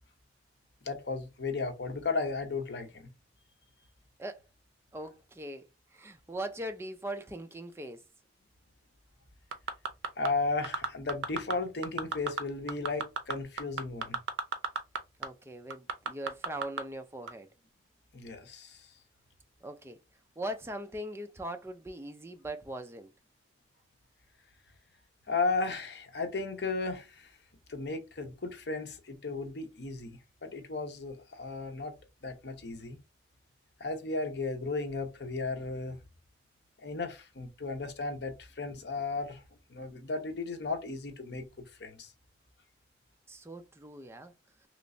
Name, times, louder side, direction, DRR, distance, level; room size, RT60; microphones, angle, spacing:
voice 1, 0.8-3.1 10.2-14.2 18.1-18.9 25.3-27.3 27.7-33.0 33.8-36.0 36.8-39.4 39.7-42.1, left 3 dB, 65° left, 0.8 m, -35 dB
voice 2, 4.9-5.6 5.9-8.0 15.2-17.5 19.6-20.0 20.4-23.1 43.3-44.3, right 1 dB, 15° right, 0.4 m, -40 dB
sound 1, 9.5-10.3 10.6-11.5 11.8-12.4 12.7-15.0 15.2-15.3 15.7-16.8 17.3-17.4, right 4 dB, 80° right, 0.6 m, -32 dB
3.2 x 3.0 x 2.6 m
head